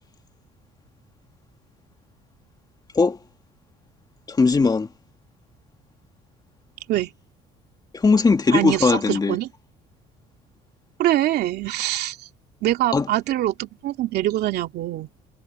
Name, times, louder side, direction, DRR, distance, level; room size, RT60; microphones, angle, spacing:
voice 1, 4.3-4.9 7.9-9.4 12.9-13.1, left 4 dB, 25° left, 2.0 m, -19 dB
voice 2, 8.5-9.5 11.0-12.2 12.6-15.1, right 14 dB, 75° right, 2.7 m, -24 dB
cardioid pair, 110°, 17 cm